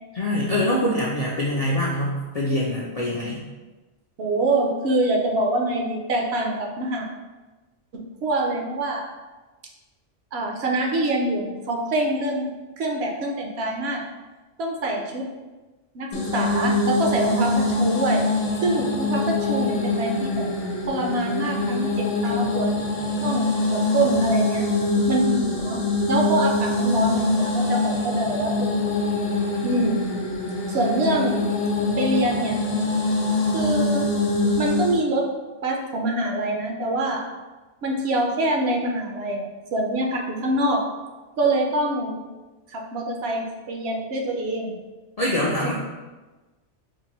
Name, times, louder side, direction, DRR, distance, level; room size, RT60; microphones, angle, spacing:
voice 1, 0.1-3.4 45.2-45.7, left 1 dB, 55° left, -5 dB, 0.4 m, -24 dB
voice 2, 4.2-7.1 7.9-9.0 10.3-12.5 12.8-14.0 14.6-15.3 15.9-18.2 18.6-20.5 20.9-22.7 23.2-24.7 25.1-25.8 26.1-28.7 29.0-29.1 29.6-30.0 30.7-31.4 32.0-32.6 33.5-34.0 34.6-35.3 35.6-37.2 37.8-40.8 41.4-42.2 42.7-44.7 45.6-45.7, right 1 dB, 65° right, 1 dB, 0.8 m, -25 dB
sound 1, 16.1-35.0, left 2 dB, 80° left, 1.0 m, -24 dB
4.6 x 2.5 x 2.9 m, 1.2 s
omnidirectional pair, 1.2 m